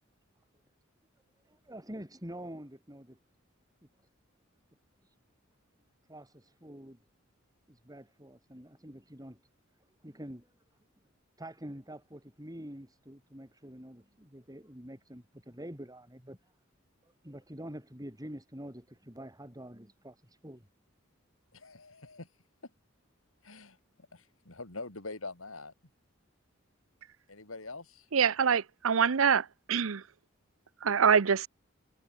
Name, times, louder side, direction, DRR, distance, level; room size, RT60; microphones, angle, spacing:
voice 1, 1.5-3.2 6.1-7.0 7.7-9.4 10.0-10.5 11.4-16.4 17.0-20.7, right 1 dB, 20° right, 7.6 m, -46 dB
voice 2, 21.5-22.3 23.4-23.8 24.1-25.7 27.3-28.1, left 3 dB, 80° left, 3.8 m, -44 dB
voice 3, 28.1-30.0 30.8-31.5, right 6 dB, 80° right, 0.7 m, -25 dB
head